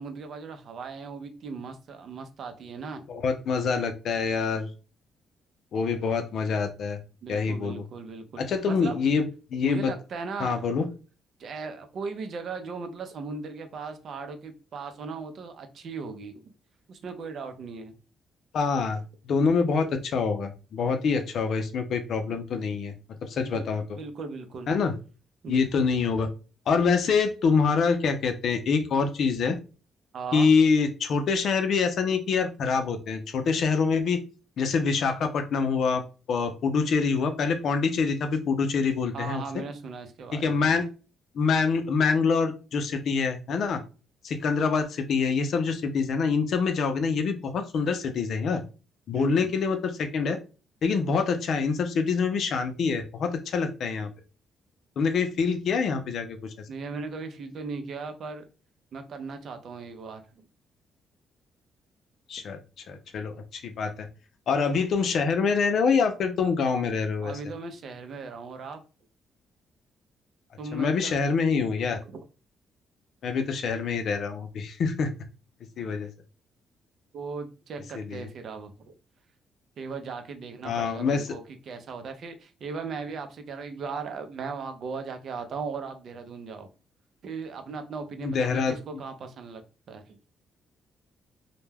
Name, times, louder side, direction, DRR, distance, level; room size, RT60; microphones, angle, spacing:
voice 1, 0.0-3.0 7.2-8.4 8.7-9.2 9.6-10.9 11.4-16.5 16.9-17.9 23.5-23.6 23.9-24.8 25.4-25.9 30.1-30.5 39.1-40.7 49.1-49.4 56.7-58.4 58.9-60.4 67.2-68.8 70.6-71.2 72.0-72.2 77.1-78.9 79.8-86.7 87.2-89.6 89.9-90.2, right 4 dB, 60° right, 7 dB, 0.5 m, -37 dB
voice 2, 3.1-4.7 5.7-7.0 7.3-7.8 8.4-9.3 9.5-9.9 10.4-10.9 18.5-22.9 23.2-23.8 24.7-24.9 25.5-26.3 26.7-29.6 30.3-34.2 34.6-36.0 36.3-39.6 40.4-40.9 41.3-43.8 44.2-48.6 49.1-50.4 50.8-54.1 55.0-56.5 62.3-62.6 62.9-64.1 64.5-67.3 70.7-72.0 73.2-75.1 75.8-76.1 77.9-78.2 80.6-81.2 88.2-88.8, left 5 dB, 65° left, 7 dB, 0.5 m, -25 dB
2.2 x 2.1 x 3.2 m, 0.34 s
cardioid pair, 90°, 0 cm